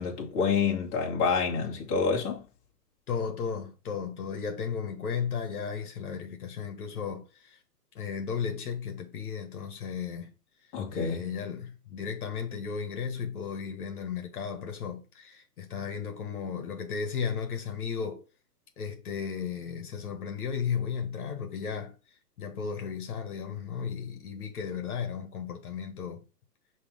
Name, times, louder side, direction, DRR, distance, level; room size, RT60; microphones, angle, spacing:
voice 1, 0.0-2.4 10.7-11.2, left 5 dB, 25° left, 1.9 m, -28 dB
voice 2, 3.1-7.6 7.9-10.4 10.9-18.2 18.8-26.3, left 6 dB, 65° left, 1.6 m, -35 dB
5.7 x 3.3 x 5.0 m
hypercardioid pair, 135°, 48 cm